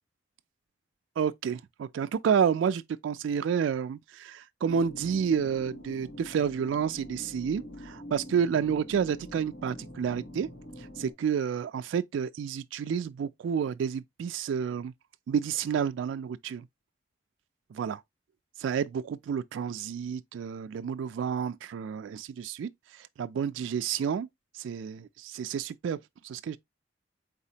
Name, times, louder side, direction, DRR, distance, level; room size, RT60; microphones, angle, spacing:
voice 1, 1.2-10.5 11.0-14.9 15.3-16.7 17.7-18.0 18.6-22.7 23.0-24.3 24.5-26.0 26.2-26.6, right 7 dB, 80° right, 0.3 m, -30 dB
sound 1, 4.7-11.1, left 1 dB, 65° left, 2.7 m, -45 dB
4.1 x 4.0 x 2.7 m
head